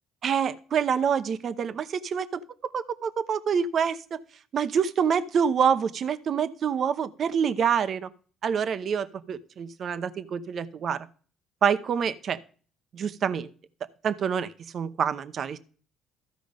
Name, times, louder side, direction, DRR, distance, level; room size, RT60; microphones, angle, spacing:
voice 1, 0.2-4.2 4.5-8.1 8.4-11.1 11.6-12.4 12.9-13.5 14.0-15.6, right 7 dB, 55° right, 13 dB, 0.8 m, -26 dB
13.5 x 5.1 x 5.2 m, 0.41 s
supercardioid pair, 70°, 0 cm